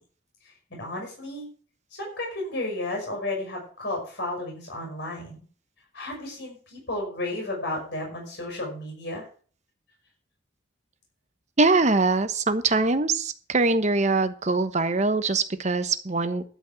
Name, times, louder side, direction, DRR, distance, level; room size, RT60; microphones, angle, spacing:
voice 1, 0.4-1.5 2.0-5.4 5.9-9.2, left 2 dB, 60° left, 0 dB, 5.7 m, -33 dB
voice 2, 11.6-16.4, right 3 dB, 35° right, 11 dB, 1.0 m, -23 dB
12.5 x 5.3 x 8.8 m, 0.43 s
head